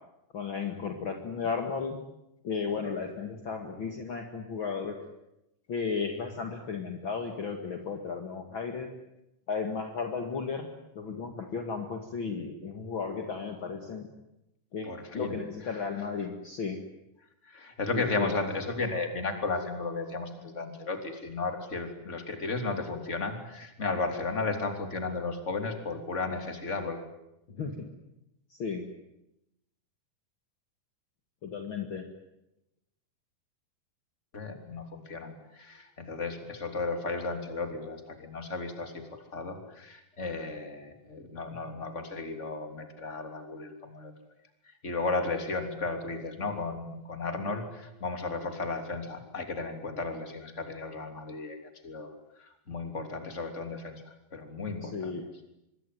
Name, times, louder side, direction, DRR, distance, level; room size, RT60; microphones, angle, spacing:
voice 1, 0.3-2.0 2.4-4.9 5.7-8.9 9.5-10.7 10.9-14.1 14.7-16.8 17.9-18.3 27.5-27.7 28.5-28.8 31.4-32.0 54.8-55.2, left 5 dB, 45° left, 4 dB, 1.6 m, -34 dB
voice 2, 14.8-15.4 17.5-27.0 34.3-44.1 44.8-51.6 51.8-52.1 52.4-54.0 54.3-55.2, left 3 dB, 20° left, 6 dB, 2.6 m, -34 dB
25.5 x 23.0 x 9.4 m, 0.88 s
omnidirectional pair, 5.2 m